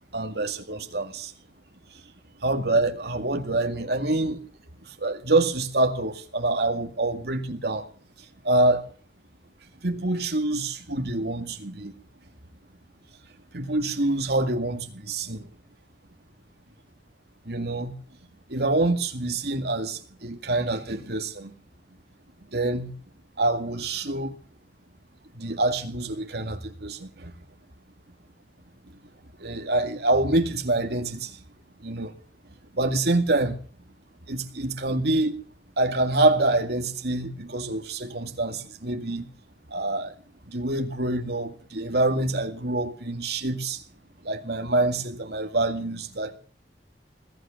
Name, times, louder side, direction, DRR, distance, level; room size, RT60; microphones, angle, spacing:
voice 1, 0.1-1.3 2.4-4.4 5.0-7.8 8.4-8.9 9.8-11.9 13.5-15.5 17.5-18.0 18.5-21.5 22.5-22.9 23.4-24.3 25.4-27.3 29.4-31.4 31.8-32.1 32.7-33.6 34.3-35.4 35.8-39.3 39.7-40.1 40.5-43.8 44.2-46.4, right 2 dB, 65° right, 2.1 m, -26 dB
20.5 x 9.0 x 7.0 m
head